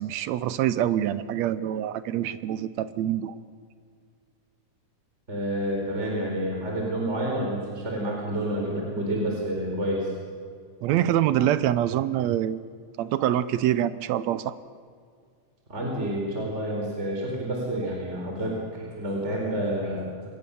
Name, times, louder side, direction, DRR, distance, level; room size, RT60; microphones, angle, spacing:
voice 1, 0.0-3.4 10.8-12.7 13.0-14.6, right 11 dB, 75° right, 15 dB, 1.8 m, -25 dB
voice 2, 5.3-10.1 15.7-20.1, right 1 dB, 20° right, -1 dB, 4.5 m, -29 dB
25.0 x 21.0 x 7.0 m, 2.1 s
omnidirectional pair, 3.6 m